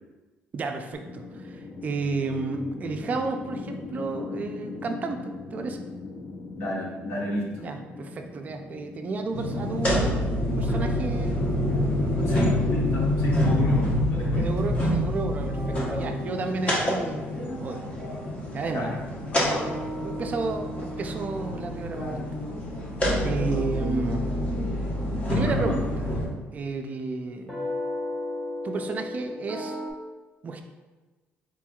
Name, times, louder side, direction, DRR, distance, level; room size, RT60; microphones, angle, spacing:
voice 1, 0.5-5.8 7.6-11.5 12.0-12.4 14.4-17.3 17.6-17.9 18.5-19.0 19.7-22.2 23.2-24.3 25.3-25.8 26.5-27.7 28.6-29.8 30.4-30.6, right 3 dB, 35° right, 5 dB, 0.4 m, -32 dB
sound 1, 0.9-13.1, left 4 dB, 50° left, 0.6 m, -40 dB
voice 2, 6.5-7.7 12.3-14.5 18.7-19.0 25.4-25.8, left 2 dB, 70° left, -3 dB, 1.1 m, -32 dB
sound 2, 9.3-26.2, left 1 dB, 30° left, 1.0 m, -27 dB
sound 3, 12.0-15.2 15.5-29.9, left 1 dB, 15° left, 1.2 m, -39 dB
4.4 x 4.3 x 2.3 m, 1.2 s
cardioid pair, 130°, 4 cm